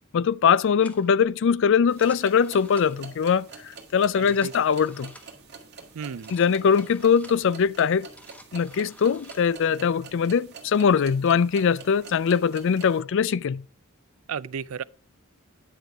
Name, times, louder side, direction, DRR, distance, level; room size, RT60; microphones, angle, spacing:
voice 1, 0.1-3.4 3.9-5.1 6.3-8.1 8.5-13.6, left 6 dB, 60° left, 0.4 m, -22 dB
sound 1, 0.8-1.1 1.8-3.2 4.1-5.4 6.1-7.5 8.0-9.6, left 1 dB, 5° left, 1.4 m, -51 dB
sound 2, 1.9-13.0, right 5 dB, 50° right, 1.8 m, -46 dB
voice 2, 4.2-4.5 5.9-6.3 14.3-14.8, right 6 dB, 70° right, 0.4 m, -33 dB
10.0 x 6.6 x 4.7 m
head